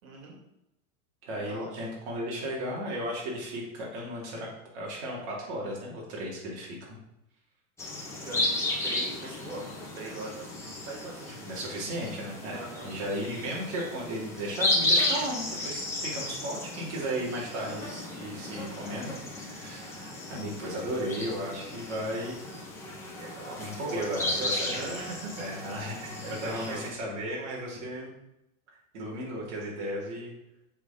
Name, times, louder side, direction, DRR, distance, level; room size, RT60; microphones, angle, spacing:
voice 1, 0.0-0.4 1.3-1.8 8.2-9.6 9.9-11.6 12.5-13.0 16.1-16.3 17.5-17.8 23.2-25.5 26.2-26.8, right 2 dB, 85° right, -1 dB, 2.9 m, -41 dB
voice 2, 1.2-4.5 4.7-7.0 11.4-22.4 23.6-25.0 25.4-28.1 28.9-30.3, equal, 55° right, -4 dB, 3.2 m, -35 dB
sound 1, 7.8-26.9, left 2 dB, 5° left, 1.4 m, -34 dB
7.7 x 4.7 x 5.3 m, 0.88 s
supercardioid pair, 160°, 40 cm